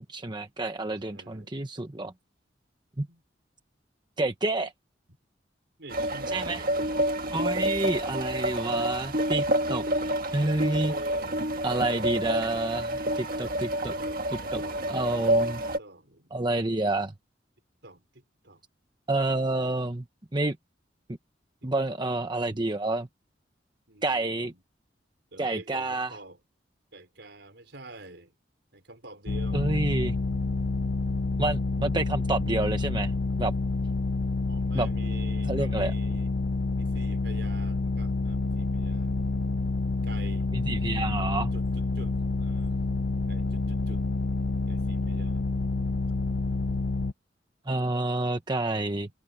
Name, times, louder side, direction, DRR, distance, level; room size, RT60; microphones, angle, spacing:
voice 1, 0.0-2.1 3.0-3.1 4.2-4.7 6.3-6.6 7.3-9.8 10.3-10.9 11.6-13.9 14.5-14.6 14.9-15.6 16.3-17.1 19.1-20.0 20.3-20.6 21.6-23.1 24.0-24.5 25.4-26.1 29.5-30.2 31.4-33.1 33.4-33.5 34.7-34.9 35.5-35.9 40.5-41.5 47.7-49.1, right 2 dB, 25° right, 1.1 m, -28 dB
voice 2, 1.1-1.5 3.1-3.2 5.8-6.8 7.4-8.6 10.6-11.4 13.7-14.9 15.4-16.5 17.8-18.6 21.6-22.0 23.9-24.6 25.3-26.4 26.9-28.3 28.7-29.7 34.5-36.3 36.7-39.2 40.0-40.5 41.5-42.9 43.3-44.1 44.7-45.6, right 2 dB, 70° right, 5.2 m, -48 dB
sound 1, 5.9-15.8, right 1 dB, 50° right, 1.7 m, -29 dB
sound 2, 29.3-47.1, left 3 dB, 75° left, 0.6 m, -28 dB
head